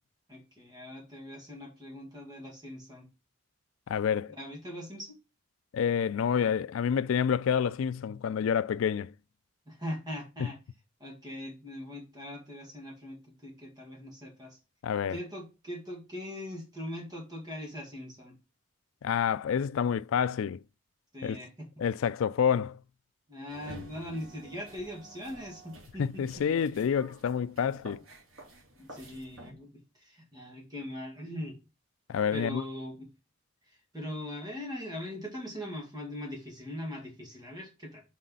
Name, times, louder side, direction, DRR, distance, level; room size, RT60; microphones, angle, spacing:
voice 1, 0.3-3.1 4.4-5.2 9.7-10.6 11.0-14.6 15.1-18.4 21.1-21.7 23.3-26.2 28.8-31.6 32.3-33.1 33.9-38.0, equal, 20° right, 2.2 m, -41 dB
voice 2, 3.9-4.3 5.7-9.1 14.8-15.2 19.0-20.6 21.2-21.4 21.8-22.8 26.0-28.0 32.1-32.6, left 7 dB, 75° left, 0.3 m, -28 dB
sound 1, 23.5-29.5, right 1 dB, 80° right, 2.9 m, -50 dB
6.2 x 4.1 x 5.4 m
head